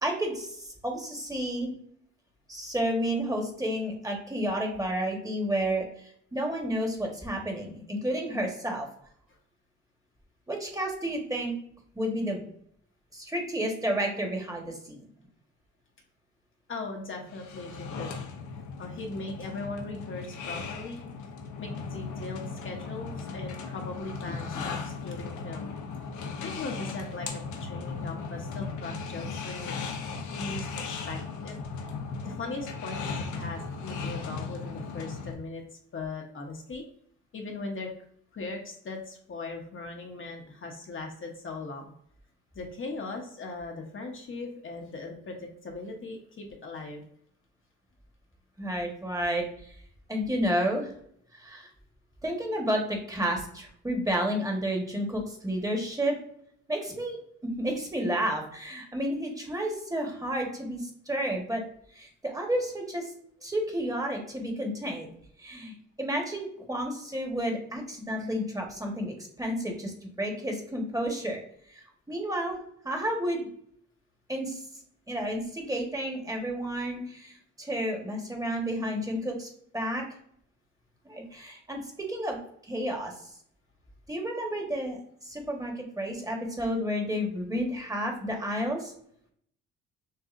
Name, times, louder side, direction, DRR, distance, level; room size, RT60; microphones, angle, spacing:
voice 1, 0.0-1.7 2.5-8.9 10.5-11.5 11.9-12.4 13.1-15.0 48.6-49.7 50.1-50.9 51.3-51.7 52.2-56.2 56.7-61.6 61.9-63.0 63.4-65.1 65.4-71.4 71.7-71.8 72.1-72.6 72.8-73.5 74.3-74.6 75.1-79.5 79.7-80.0 81.0-82.4 82.6-83.1 84.1-88.9, equal, 10° right, 1 dB, 1.2 m, -31 dB
voice 2, 16.7-18.1 18.8-21.0 21.6-25.7 26.4-29.7 30.3-31.6 32.2-35.6 35.9-36.8 37.3-37.9 38.3-41.9 42.5-47.0, left 3 dB, 45° left, 1 dB, 0.9 m, -39 dB
sound 1, 17.3-35.3, left 4 dB, 75° left, 0.8 m, -37 dB
6.6 x 2.3 x 2.5 m, 0.67 s
cardioid pair, 90°, 30 cm